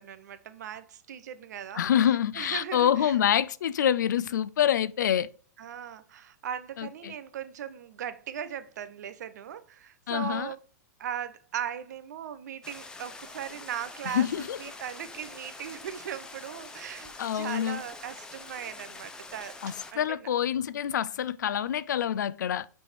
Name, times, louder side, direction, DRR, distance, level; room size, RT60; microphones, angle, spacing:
voice 1, 0.0-1.9 2.4-3.1 5.6-10.6 11.0-19.6 19.9-20.3, right 9 dB, 70° right, 0.7 m, -38 dB
voice 2, 1.7-5.3 6.8-7.1 10.1-10.5 14.1-14.6 17.2-17.8 19.6-22.7, left 9 dB, 80° left, 0.4 m, -26 dB
sound 1, 12.6-19.9, left 3 dB, 10° left, 0.6 m, -45 dB
6.1 x 3.4 x 4.4 m
hypercardioid pair, 135°, 10 cm